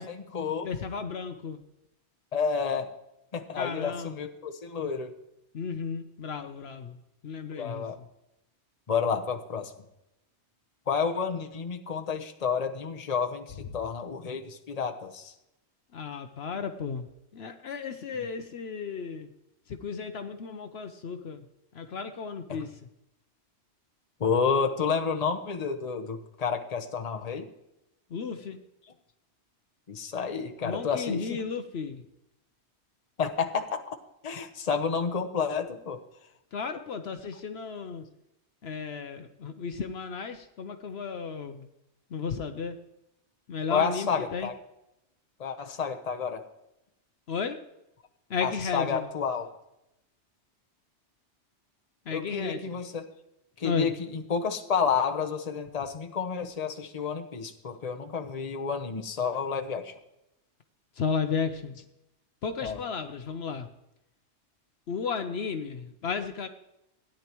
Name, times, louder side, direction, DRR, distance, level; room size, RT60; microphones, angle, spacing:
voice 1, 0.0-0.7 2.3-2.9 3.3-5.1 7.6-8.0 8.9-9.7 10.9-15.3 18.1-18.3 22.5-22.7 24.2-27.5 29.9-31.5 33.2-33.8 34.2-36.0 43.7-44.6 45.4-46.4 48.4-49.5 52.1-53.1 53.6-59.9 62.6-62.8, left 6 dB, 35° left, 5 dB, 1.0 m, -30 dB
voice 2, 0.6-1.6 3.6-4.1 5.5-6.9 7.2-7.8 15.9-17.0 17.3-19.3 19.8-21.4 21.8-22.7 28.1-28.6 30.6-32.0 36.5-38.0 38.6-41.6 42.1-42.7 43.5-44.5 47.3-47.6 48.3-49.0 52.1-52.6 53.6-53.9 61.0-61.7 62.4-63.7 64.9-66.5, left 5 dB, 65° left, 8 dB, 1.0 m, -33 dB
16.0 x 10.0 x 3.0 m, 0.87 s
omnidirectional pair, 1.2 m